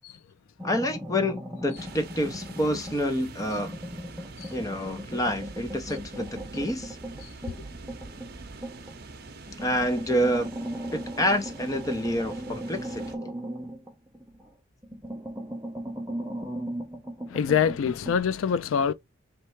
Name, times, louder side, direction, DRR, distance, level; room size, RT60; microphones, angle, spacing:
voice 1, 0.6-3.8 4.5-7.0 9.6-10.5 10.9-13.0, equal, 15° left, 0.7 m, -28 dB
sound 1, 0.6-3.1 3.4-9.0 9.5-14.5 14.8-18.2, equal, 15° right, 0.8 m, -38 dB
sound 2, 1.7-13.1, right 3 dB, 50° right, 0.8 m, -44 dB
voice 2, 7.2-7.6 17.3-18.9, left 7 dB, 80° left, 0.3 m, -26 dB
3.3 x 3.3 x 4.5 m
head